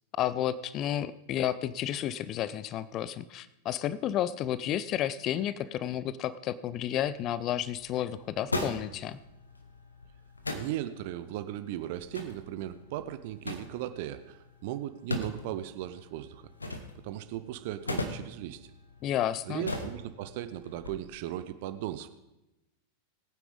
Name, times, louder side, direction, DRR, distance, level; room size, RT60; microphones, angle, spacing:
voice 1, 0.2-9.2 19.0-19.7, left 11 dB, 35° left, 17 dB, 0.4 m, -31 dB
sound 1, 6.8-20.9, left 2 dB, 80° left, 1.2 m, -40 dB
voice 2, 10.5-16.5 17.0-18.7 19.5-22.1, right 13 dB, 50° right, 12 dB, 0.6 m, -37 dB
20.0 x 9.2 x 3.5 m, 0.95 s
figure-of-eight pair, 90°, 0 cm